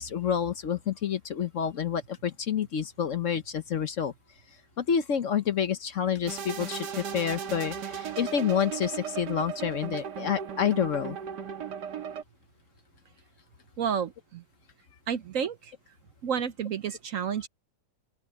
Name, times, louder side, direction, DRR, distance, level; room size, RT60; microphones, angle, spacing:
voice 1, 0.0-4.1 4.8-11.2, left 8 dB, 55° left, 1.1 m, -28 dB
sound 1, 6.3-12.2, right 7 dB, 85° right, 2.0 m, -36 dB
voice 2, 13.8-14.4 15.1-15.7 16.2-17.5, right 7 dB, 60° right, 1.0 m, -30 dB
open air
omnidirectional pair, 1.8 m